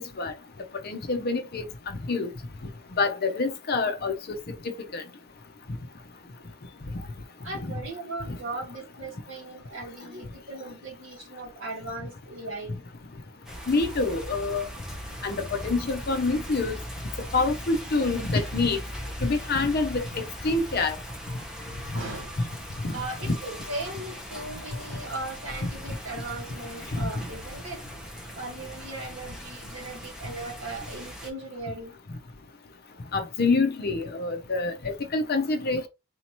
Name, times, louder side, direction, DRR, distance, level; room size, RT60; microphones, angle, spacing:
voice 1, 0.8-1.6 2.1-2.3 3.0-4.1 4.6-5.0 7.6-7.7 13.7-14.7 15.2-16.8 17.3-18.8 19.2-21.0 22.4-22.5 22.8-22.9 23.2-23.4 26.9-27.1 33.1-34.7 35.1-35.9, left 3 dB, 45° left, 0.6 m, -26 dB
voice 2, 7.4-12.8 21.9-22.3 22.9-27.8 28.3-32.0, right 2 dB, 60° right, 1.9 m, -38 dB
sound 1, 13.5-31.3, equal, 5° right, 0.8 m, -39 dB
4.2 x 2.8 x 2.9 m
head